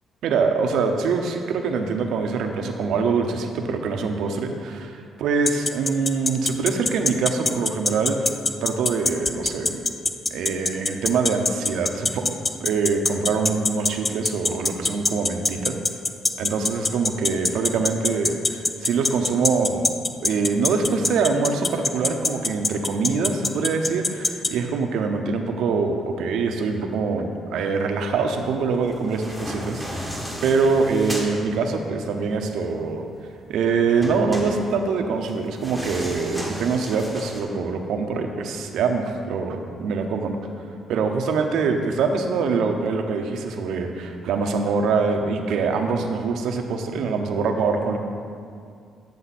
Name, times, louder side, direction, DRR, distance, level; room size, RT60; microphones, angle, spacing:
voice 1, 0.2-8.3 8.6-9.8 10.3-12.3 12.6-15.7 16.4-19.9 20.2-33.0 33.5-40.3 40.9-48.0, right 4 dB, 80° right, 5 dB, 0.7 m, -24 dB
sound 1, 5.5-24.5, left 3 dB, 25° left, 0.5 m, -22 dB
sound 2, 28.9-31.3 34.0-37.4, equal, 10° left, 1.7 m, -34 dB
9.5 x 6.7 x 4.2 m, 2.3 s
cardioid pair, 90°, 0 cm